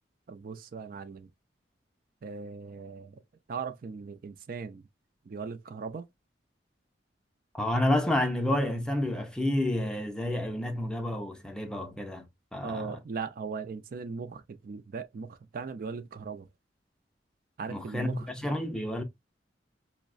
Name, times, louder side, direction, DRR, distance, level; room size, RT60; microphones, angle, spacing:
voice 1, 0.3-1.3 2.2-3.1 3.5-4.9 5.3-6.1 12.6-16.5 17.6-18.3, right 5 dB, 50° right, 0.4 m, -38 dB
voice 2, 7.5-12.3 12.5-13.0 17.7-19.0, left 1 dB, 5° left, 0.5 m, -29 dB
5.4 x 2.0 x 2.4 m
head